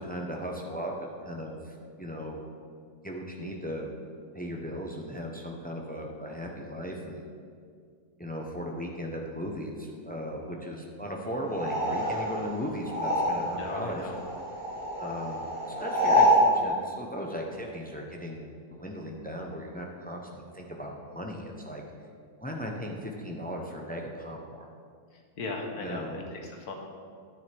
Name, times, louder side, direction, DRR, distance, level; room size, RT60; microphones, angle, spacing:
voice 1, 0.0-2.4 3.0-3.9 4.3-7.2 8.2-14.0 14.9-15.4 15.8-18.5 18.8-21.8 22.4-24.4 25.8-26.2, equal, 10° left, 0 dB, 0.4 m, -37 dB
sound 1, 11.5-13.7 14.0-16.5, equal, 20° right, 2.4 m, -26 dB
voice 2, 13.6-14.2 25.1-26.7, left 3 dB, 75° left, 2 dB, 1.5 m, -37 dB
10.0 x 9.6 x 3.4 m, 2.2 s
omnidirectional pair, 1.7 m